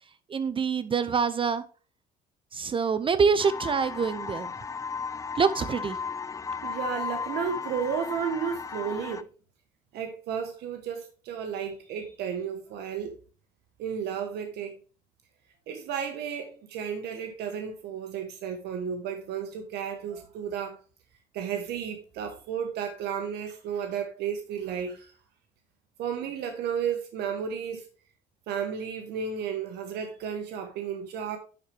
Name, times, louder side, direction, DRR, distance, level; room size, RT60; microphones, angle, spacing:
voice 1, 0.3-1.6 2.5-4.5 5.4-6.0, right 5 dB, 30° right, 0.5 m, -25 dB
sound 1, 3.4-9.2, left 5 dB, 20° left, 0.4 m, -35 dB
voice 2, 6.6-9.2 9.9-13.1 13.8-14.8 15.7-20.8 21.3-25.1 26.0-27.9 28.5-31.4, right 7 dB, 75° right, 1.2 m, -33 dB
10.5 x 4.4 x 3.3 m
cardioid pair, 110°, 17 cm